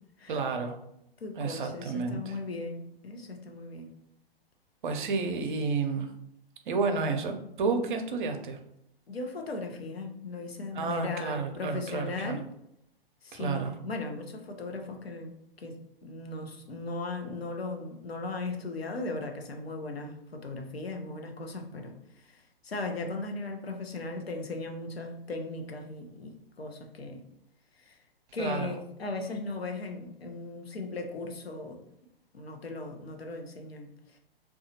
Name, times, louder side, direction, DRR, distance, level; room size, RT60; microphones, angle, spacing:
voice 1, 0.3-0.8 1.4-2.4 4.8-6.1 6.7-8.6 10.7-12.4 13.3-13.7 28.4-28.7, right 4 dB, 55° right, 6 dB, 0.5 m, -31 dB
voice 2, 1.2-3.9 9.1-12.4 13.2-27.2 27.8-28.0 28.3-31.8 32.3-34.2, left 3 dB, 85° left, 3 dB, 0.6 m, -37 dB
2.8 x 2.3 x 2.7 m, 0.78 s
figure-of-eight pair, 110°, 30 cm